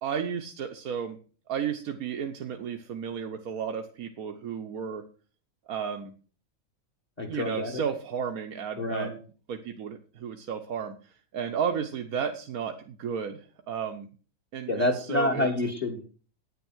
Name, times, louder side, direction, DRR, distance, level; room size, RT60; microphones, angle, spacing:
voice 1, 0.0-1.2 1.5-5.0 5.7-6.1 7.3-9.1 9.5-10.9 11.3-14.1 14.5-15.5, right 7 dB, 85° right, 4 dB, 1.5 m, -33 dB
voice 2, 7.2-7.8 8.8-9.1 14.7-16.0, left 1 dB, 30° left, 6 dB, 1.8 m, -28 dB
9.9 x 9.3 x 6.2 m, 0.39 s
omnidirectional pair, 1.5 m